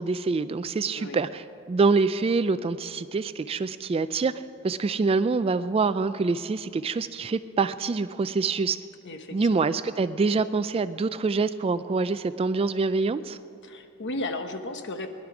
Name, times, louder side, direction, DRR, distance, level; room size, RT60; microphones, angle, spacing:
voice 1, 0.0-4.3 4.6-8.8 9.3-13.4, right 4 dB, 25° right, 13 dB, 0.3 m, -25 dB
voice 2, 0.9-1.3 9.0-9.7 13.6-15.1, left 2 dB, 55° left, 7 dB, 1.0 m, -35 dB
20.0 x 11.5 x 4.9 m, 2.5 s
head